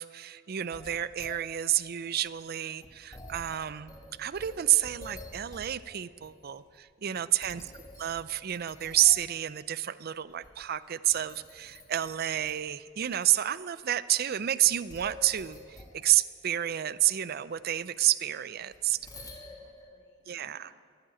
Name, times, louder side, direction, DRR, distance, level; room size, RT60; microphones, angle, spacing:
voice 1, 0.0-3.9 4.2-7.6 8.0-19.0 20.3-20.7, right 12 dB, 50° right, 16 dB, 0.4 m, -29 dB
sound 1, 0.7-5.9 6.2-6.8 7.1-9.4 10.3-10.8 11.1-12.7 13.2-13.3 14.6-16.0 18.7-19.9, left 1 dB, 20° left, 1.7 m, -49 dB
voice 2, 7.0-7.7 19.1-20.8, left 2 dB, 60° left, 2 dB, 2.3 m, -65 dB
12.5 x 11.5 x 8.7 m, 2.1 s
head